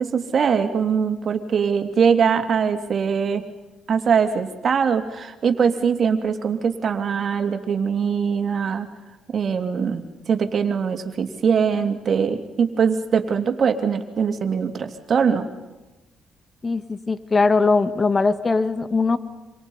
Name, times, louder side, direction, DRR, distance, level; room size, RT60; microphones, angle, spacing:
voice 1, 0.0-3.4 3.9-8.9 9.3-15.5, right 6 dB, 50° right, 7 dB, 2.8 m, -22 dB
voice 2, 16.6-19.2, left 4 dB, 30° left, 13 dB, 1.5 m, -20 dB
27.5 x 26.0 x 5.6 m, 1.1 s
cardioid pair, 90°, 0 cm